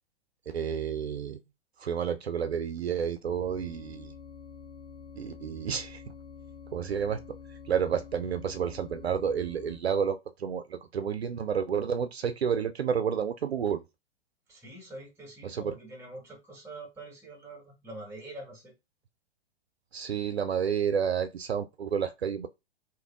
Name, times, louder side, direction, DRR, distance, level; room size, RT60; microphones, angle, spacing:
voice 1, 0.5-1.4 1.8-4.1 5.2-6.0 6.7-7.2 7.7-13.8 15.4-15.8 19.9-22.5, right 7 dB, 75° right, 0.5 m, -30 dB
sound 1, 3.2-9.8, left 6 dB, 75° left, 1.4 m, -47 dB
voice 2, 14.5-18.7, right 2 dB, 10° right, 1.5 m, -45 dB
3.3 x 2.9 x 2.4 m
figure-of-eight pair, 105°, 32 cm